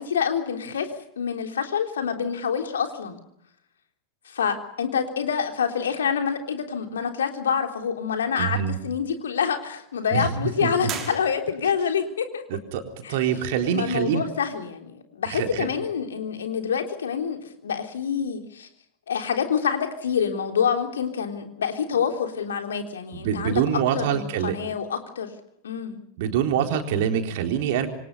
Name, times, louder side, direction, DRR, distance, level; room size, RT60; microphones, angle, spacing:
voice 1, 0.0-3.2 4.3-8.6 8.8-12.4 13.0-13.2 13.6-18.7 19.1-23.6 23.9-25.3 25.6-26.0, left 7 dB, 65° left, 5 dB, 3.6 m, -27 dB
voice 2, 8.4-8.7 10.1-10.3 10.6-10.9 12.7-12.8 13.1-14.2 15.3-15.7 23.1-24.5 26.2-27.9, right 8 dB, 50° right, 5 dB, 3.9 m, -25 dB
sound 1, 10.8-11.9, right 8 dB, 30° right, 5.3 m, -36 dB
27.5 x 24.5 x 5.5 m, 0.73 s
figure-of-eight pair, 90°, 0 cm